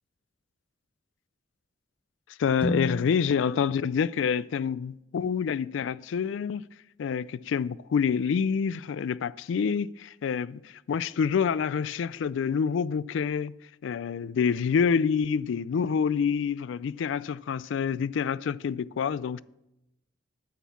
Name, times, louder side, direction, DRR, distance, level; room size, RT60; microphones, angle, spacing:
voice 1, 2.4-6.6 7.0-13.5 13.8-19.4, left 6 dB, 75° left, 0.3 m, -27 dB
sound 1, 2.6-6.6, equal, 25° left, 0.7 m, -38 dB
9.4 x 6.3 x 7.0 m
head